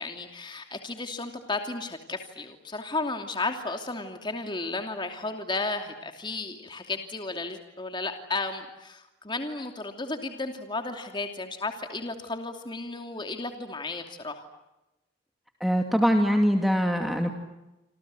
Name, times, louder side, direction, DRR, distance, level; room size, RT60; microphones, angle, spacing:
voice 1, 0.0-14.5, left 3 dB, 25° left, 5 dB, 2.8 m, -34 dB
voice 2, 15.6-17.3, equal, ahead, 3 dB, 2.5 m, -23 dB
28.0 x 27.5 x 7.8 m, 0.96 s
head